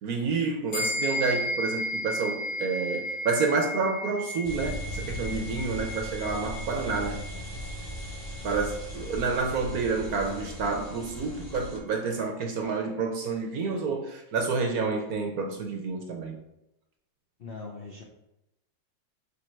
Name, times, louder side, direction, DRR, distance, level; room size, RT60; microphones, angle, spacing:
voice 1, 0.0-7.2 8.4-16.4, right 4 dB, 60° right, 4 dB, 1.1 m, -29 dB
sound 1, 0.7-10.4, equal, 50° left, 2.8 m, -35 dB
sound 2, 4.4-11.8, equal, 30° left, 2.0 m, -38 dB
voice 2, 17.4-18.0, left 3 dB, 70° left, 0 dB, 0.5 m, -40 dB
6.7 x 3.6 x 4.5 m, 0.88 s
omnidirectional pair, 2.1 m